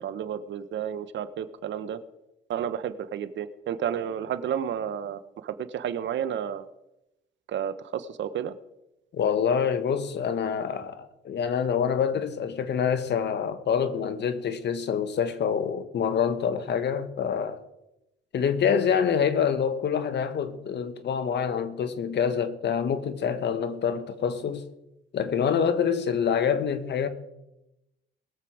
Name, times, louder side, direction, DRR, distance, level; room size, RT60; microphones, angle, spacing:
voice 1, 0.0-2.0 2.5-6.7 7.5-8.5, right 9 dB, 70° right, 1.0 m, -31 dB
voice 2, 9.1-17.6 18.3-24.7 25.1-27.1, left 7 dB, 60° left, 1.4 m, -26 dB
21.0 x 7.7 x 4.9 m
cardioid pair, 90°, 20 cm